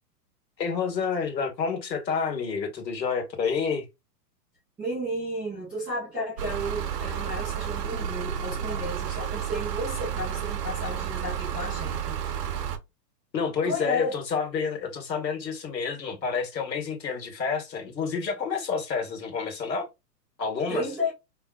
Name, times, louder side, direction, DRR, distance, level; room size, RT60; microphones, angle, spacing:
voice 1, 0.6-3.9 13.3-19.9 20.4-20.9, left 5 dB, 90° left, 1.8 m, -29 dB
voice 2, 4.8-12.2 13.6-14.1 20.7-21.1, left 1 dB, ahead, 0.3 m, -33 dB
sound 1, 6.4-12.8, right 8 dB, 70° right, 1.1 m, -31 dB
5.2 x 2.7 x 2.4 m
hypercardioid pair, 125°, 49 cm